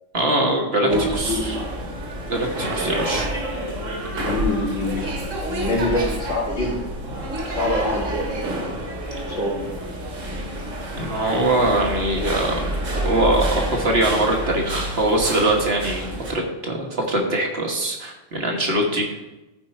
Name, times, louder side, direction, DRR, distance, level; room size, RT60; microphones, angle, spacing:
voice 1, 0.1-1.6 2.3-3.3 4.1-4.3 11.0-12.7 13.0-19.1, right 1 dB, 55° right, 1 dB, 1.6 m, -22 dB
voice 2, 0.8-1.6 2.9-3.3 4.3-6.8 7.5-8.3 9.2-9.6, left 1 dB, 75° left, -4 dB, 2.9 m, -25 dB
sound 1, 0.9-16.3, right 1 dB, 80° right, 1.9 m, -28 dB
13.0 x 4.5 x 4.3 m, 1.0 s
omnidirectional pair, 1.3 m